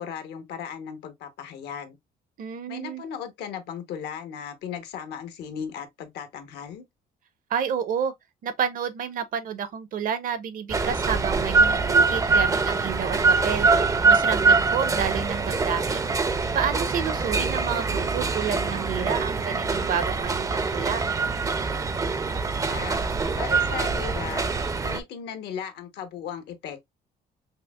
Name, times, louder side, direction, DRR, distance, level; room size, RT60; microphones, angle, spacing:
voice 1, 0.0-2.0 2.7-6.8 22.6-23.0 23.3-24.5 24.8-26.9, left 8 dB, 75° left, 0.9 m, -36 dB
voice 2, 2.4-3.0 7.5-8.1 8.4-13.7 14.0-16.1 16.5-21.0, right 7 dB, 55° right, 0.7 m, -30 dB
sound 1, 10.7-25.0, right 4 dB, 20° right, 0.4 m, -24 dB
5.5 x 2.0 x 2.2 m
cardioid pair, 110°, 17 cm